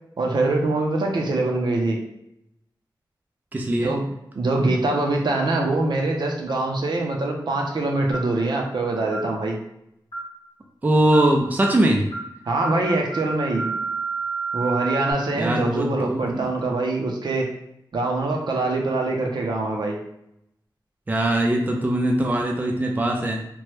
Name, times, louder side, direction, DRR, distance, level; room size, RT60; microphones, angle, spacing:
voice 1, 0.2-2.0 3.8-4.1 4.4-9.6 12.5-13.7 14.5-17.5 17.9-20.0, right 2 dB, 70° right, 1 dB, 0.5 m, -24 dB
voice 2, 3.5-3.9 10.8-12.1 15.4-16.5 21.1-23.5, right 1 dB, 20° right, 1 dB, 0.3 m, -21 dB
sound 1, 8.1-8.4 9.1-9.3 10.1-10.4 11.1-11.3 11.6-11.8 12.1-12.3 12.6-15.1, right 4 dB, 75° left, 0.9 m, -30 dB
3.0 x 2.1 x 3.1 m, 0.79 s
wide cardioid pair, 125°, 8 cm